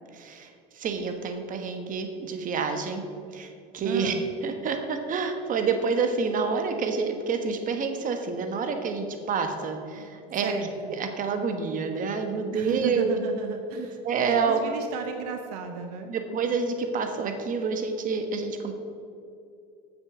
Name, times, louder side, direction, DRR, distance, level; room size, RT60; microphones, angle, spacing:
voice 1, 0.2-3.0 3.3-4.1 4.4-10.5 11.0-13.2 13.8-14.6 16.1-18.7, right 5 dB, 45° right, 6 dB, 1.3 m, -28 dB
voice 2, 3.8-4.2 10.4-10.9 12.5-14.0 14.3-16.1, right 7 dB, 85° right, 5 dB, 0.8 m, -34 dB
7.3 x 6.8 x 6.9 m, 2.4 s
supercardioid pair, 85°, 19 cm